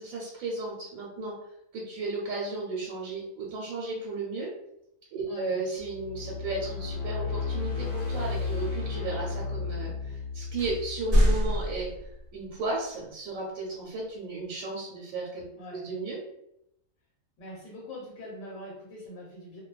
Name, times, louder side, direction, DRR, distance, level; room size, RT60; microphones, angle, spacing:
voice 1, 0.0-1.4 1.7-4.5 5.1-11.9 12.3-15.4 15.7-16.2, right 3 dB, 90° right, -3 dB, 1.0 m, -34 dB
voice 2, 5.2-5.6 15.5-15.9 17.4-19.6, left 1 dB, 75° left, -5 dB, 1.3 m, -43 dB
sound 1, 5.8-12.0, left 5 dB, 25° left, 0.8 m, -34 dB
sound 2, 6.6-6.9 8.0-8.4 9.0-9.1 10.0-10.1 10.6-12.5, equal, 50° right, 0.8 m, -26 dB
2.5 x 2.2 x 2.3 m, 0.80 s
omnidirectional pair, 1.4 m